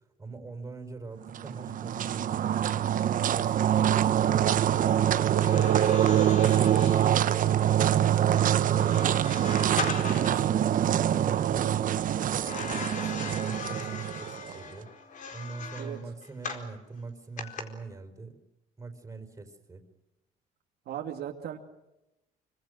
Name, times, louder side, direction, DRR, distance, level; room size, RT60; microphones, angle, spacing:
voice 1, 0.2-3.0 3.3-4.7 5.3-8.9 9.5-14.9 15.3-18.4 18.8-19.8, right 3 dB, 20° right, 6 dB, 4.8 m, -43 dB
sound 1, 1.3-14.6, right 10 dB, 50° right, 1.1 m, -25 dB
sound 2, 5.3-10.5 12.4-16.7 17.4-17.6, left 5 dB, 50° left, 4.4 m, -39 dB
voice 2, 5.8-6.3 15.8-16.0 20.9-21.6, right 11 dB, 70° right, 2 dB, 2.7 m, -37 dB
26.5 x 25.5 x 6.6 m, 0.96 s
cardioid pair, 110°, 17 cm